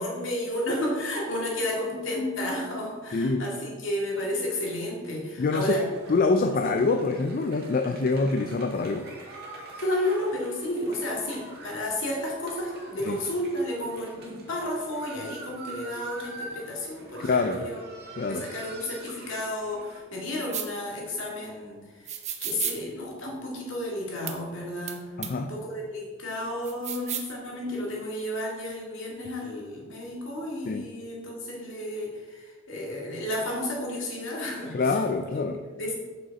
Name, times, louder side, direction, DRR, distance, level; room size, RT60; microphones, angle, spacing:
voice 1, 0.0-5.8 6.6-6.8 9.8-17.8 18.3-22.2 22.4-35.0 35.3-35.4 35.7-35.9, left 1 dB, 60° left, -2 dB, 2.2 m, -32 dB
voice 2, 3.1-3.5 5.4-5.7 6.1-9.1 13.0-13.2 17.2-17.7 18.2-18.5 25.2-25.5 30.7-30.9 34.7-35.6, left 3 dB, 40° left, 6 dB, 0.4 m, -25 dB
sound 1, 5.9-20.0, right 2 dB, 50° right, 1.7 m, -45 dB
sound 2, 20.5-20.7 22.1-22.8 24.3-24.4 24.9-25.0 25.2-25.3 26.6-27.3, right 10 dB, 35° right, 0.7 m, -32 dB
7.8 x 6.2 x 4.1 m, 1.4 s
head